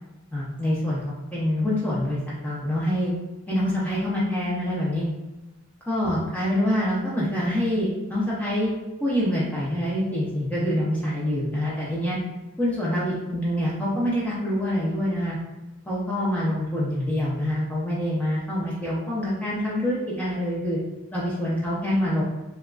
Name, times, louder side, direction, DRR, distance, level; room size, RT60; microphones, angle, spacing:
voice 1, 0.3-3.1 3.5-5.1 5.9-8.7 9.0-12.2 12.6-15.4 15.9-20.8 21.1-22.2, left 1 dB, 5° left, -8 dB, 0.4 m, -26 dB
2.9 x 2.2 x 2.3 m, 1.1 s
head